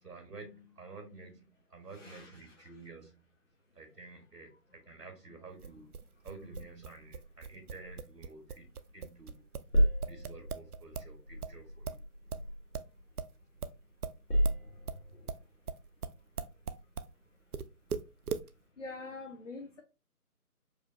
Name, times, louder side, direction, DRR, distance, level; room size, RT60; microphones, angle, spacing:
voice 1, 0.0-3.2 3.7-5.9 6.2-9.4 10.0-12.0, right 3 dB, 85° right, 1.3 m, -51 dB
voice 2, 2.0-2.5 15.1-15.2 18.8-19.8, left 3 dB, 50° left, 0.6 m, -45 dB
sound 1, 5.6-11.1 11.4-17.1 17.5-18.5, right 6 dB, 70° right, 0.5 m, -40 dB
sound 2, 6.5-9.1 9.3-13.6 14.0-15.3, equal, 75° left, 1.5 m, -34 dB
4.9 x 2.1 x 2.6 m
figure-of-eight pair, 160°, 47 cm